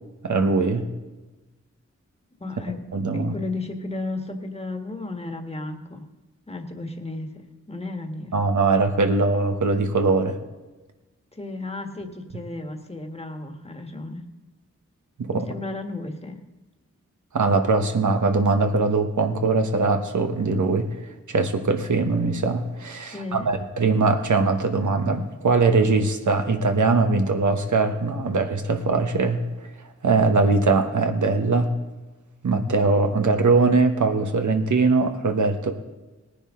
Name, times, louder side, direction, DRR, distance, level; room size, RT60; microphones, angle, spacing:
voice 1, 0.2-0.9 2.9-3.3 8.3-10.4 15.2-15.4 17.3-20.9 21.3-29.4 30.0-31.7 32.4-35.7, right 3 dB, 85° right, 6 dB, 1.2 m, -21 dB
voice 2, 2.4-6.1 6.5-8.4 11.3-14.3 15.3-16.4 23.1-23.5, left 2 dB, 20° left, 5 dB, 1.5 m, -34 dB
18.5 x 10.0 x 3.7 m, 1.2 s
wide cardioid pair, 65°, 29 cm